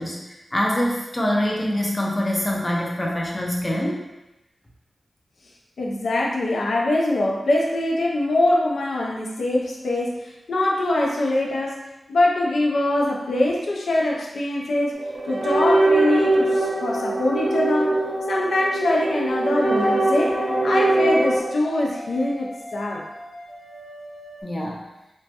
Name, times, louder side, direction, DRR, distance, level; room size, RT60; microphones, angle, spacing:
voice 1, 0.0-4.0 24.4-24.8, left 1 dB, 20° left, -2 dB, 0.5 m, -25 dB
voice 2, 5.8-15.0 15.3-18.0 18.3-23.1, left 1 dB, 85° left, -2 dB, 0.4 m, -23 dB
sound 1, 14.9-21.4, right 2 dB, 65° right, 0.6 m, -22 dB
sound 2, 19.1-24.4, equal, ahead, 1.0 m, -40 dB
3.1 x 2.1 x 2.8 m, 0.97 s
wide cardioid pair, 130°, 0 cm